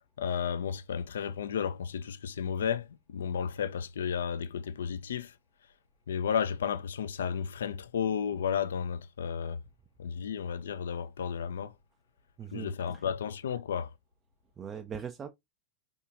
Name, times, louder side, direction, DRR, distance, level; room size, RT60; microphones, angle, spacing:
voice 1, 0.2-5.3 6.1-9.6 10.0-11.7 12.5-13.9, left 7 dB, 65° left, 0.4 m, -33 dB
voice 2, 12.4-13.0 14.6-15.3, right 7 dB, 20° right, 0.3 m, -41 dB
4.4 x 3.5 x 2.5 m
figure-of-eight pair, 90°, 0 cm